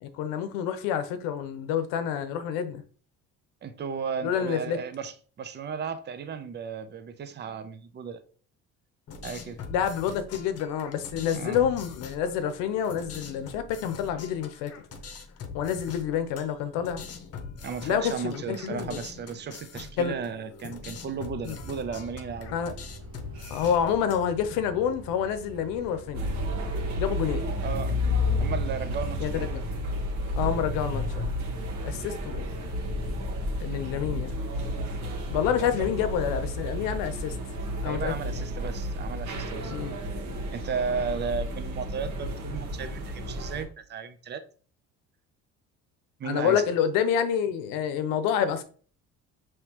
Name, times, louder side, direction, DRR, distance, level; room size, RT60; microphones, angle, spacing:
voice 1, 0.0-2.8 4.2-4.8 9.7-14.7 15.5-17.0 17.8-19.0 20.0-20.1 21.4-21.6 22.5-22.7 23.5-26.2 27.0-27.5 29.2-29.6 30.4-31.3 31.8-32.5 33.6-34.4 35.3-37.3 37.8-38.4 39.7-40.0 46.2-48.6, left 8 dB, 85° left, 0.7 m, -28 dB
voice 2, 3.6-8.2 9.2-9.6 11.3-11.6 17.6-22.6 27.6-28.0 28.4-29.5 34.8-34.9 35.6-36.1 37.8-39.9 40.5-44.4 46.2-46.6, right 6 dB, 30° right, 0.6 m, -35 dB
sound 1, 9.1-24.6, left 5 dB, 45° left, 0.8 m, -43 dB
sound 2, 21.5-29.5, equal, 85° right, 1.2 m, -44 dB
sound 3, 26.1-43.7, left 1 dB, 60° right, 1.3 m, -31 dB
5.3 x 3.1 x 2.9 m
cardioid pair, 95°, 33 cm